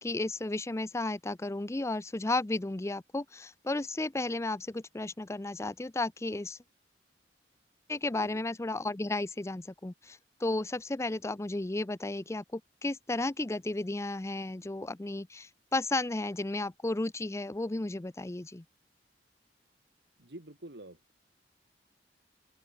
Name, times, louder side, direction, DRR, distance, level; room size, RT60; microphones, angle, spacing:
voice 1, 0.0-6.6 7.9-18.6, left 2 dB, 15° left, 0.5 m, -33 dB
voice 2, 20.2-21.0, right 1 dB, 70° right, 2.5 m, -47 dB
open air
head